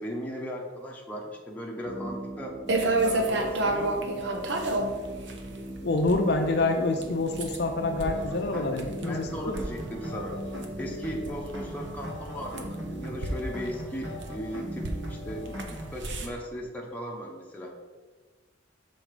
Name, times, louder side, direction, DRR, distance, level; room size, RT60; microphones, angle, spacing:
voice 1, 0.0-2.6 3.0-4.1 8.5-8.7 9.0-10.4 10.8-17.8, equal, 10° left, -2 dB, 0.9 m, -37 dB
sound 1, 1.8-16.2, right 1 dB, 30° right, 0.6 m, -43 dB
paws on tile, 2.7-16.3, right 2 dB, 60° right, 0.7 m, -32 dB
voice 2, 5.8-9.5, left 2 dB, 55° left, 4 dB, 0.6 m, -27 dB
sound 2, 8.0-16.0, equal, 75° right, 1.5 m, -39 dB
6.3 x 4.3 x 4.9 m, 1.3 s
head